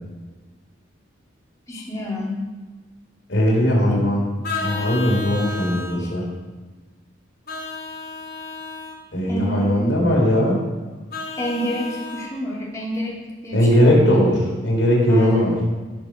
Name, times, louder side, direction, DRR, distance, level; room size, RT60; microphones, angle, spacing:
voice 1, 1.7-2.4 3.8-4.1 6.0-6.1 9.3-10.0 11.4-14.2 15.1-15.5, equal, 15° left, -4 dB, 2.5 m, -28 dB
voice 2, 3.3-4.2 4.6-6.2 9.1-10.6 13.5-14.4 14.6-15.5, equal, 75° left, -2 dB, 4.4 m, -18 dB
Vehicle horn car horn honking, 4.4-6.0 7.5-9.0 11.1-12.3, left 3 dB, 50° left, 3.0 m, -32 dB
17.5 x 6.8 x 6.3 m, 1.3 s
head